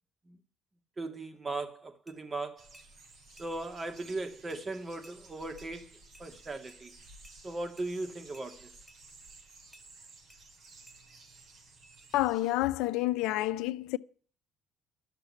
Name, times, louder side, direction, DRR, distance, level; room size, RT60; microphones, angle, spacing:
voice 1, 1.0-2.7 3.4-6.9 7.4-8.7, right 2 dB, 30° right, 2.3 m, -38 dB
sound 1, 2.1-2.2 2.7-2.9 3.4-3.5 4.0-4.1 4.5-4.6 5.0-5.2 5.6-5.7 6.1-6.3 6.7-6.8 7.2-7.4 7.8-7.9 8.3-8.5 8.9-9.0 9.7-9.9 10.3-10.4 10.9-11.0, equal, ahead, 2.3 m, -58 dB
sound 2, 2.6-12.5, right 3 dB, 55° right, 4.6 m, -55 dB
voice 2, 12.1-14.0, left 16 dB, 80° left, 0.6 m, -29 dB
12.0 x 6.7 x 9.8 m
supercardioid pair, 80°, 0 cm